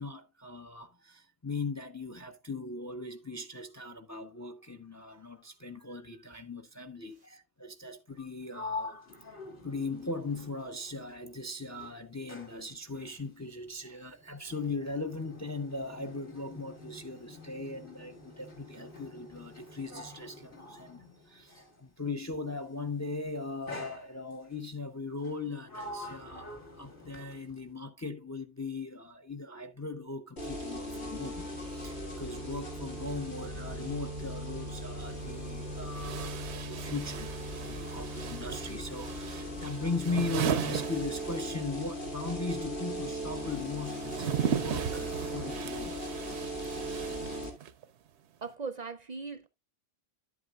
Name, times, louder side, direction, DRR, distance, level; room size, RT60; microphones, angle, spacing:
voice 1, 0.0-9.1 9.6-46.0, left 3 dB, 20° left, 0.5 m, -39 dB
Sliding door, 8.1-11.4 11.7-21.8 22.7-23.0 23.7-24.6 25.2-27.7, left 2 dB, 55° left, 2.4 m, -46 dB
sound 1, 30.4-47.5, equal, 80° left, 2.1 m, -38 dB
sound 2, 35.0-35.1 35.9-41.7 42.0-47.8, right 8 dB, 85° right, 0.9 m, -37 dB
voice 2, 48.4-49.5, right 4 dB, 45° right, 0.7 m, -39 dB
10.5 x 8.3 x 2.4 m
omnidirectional pair, 1.1 m